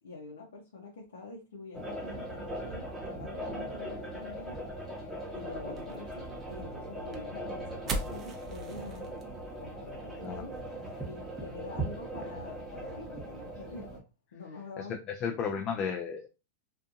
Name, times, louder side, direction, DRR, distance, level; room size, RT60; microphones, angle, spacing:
voice 1, 0.0-4.6 5.3-9.1 9.6-10.5 11.0-14.0 14.3-15.0 15.2-15.8, left 3 dB, 85° left, -2 dB, 0.7 m, -46 dB
sound 1, 1.7-14.0, right 1 dB, 5° right, 0.9 m, -40 dB
sound 2, 5.7-12.5, right 2 dB, 30° right, 0.5 m, -43 dB
voice 2, 14.8-16.3, left 6 dB, 35° left, 4 dB, 0.4 m, -34 dB
2.6 x 2.5 x 2.5 m, 0.29 s
hypercardioid pair, 125°, 0 cm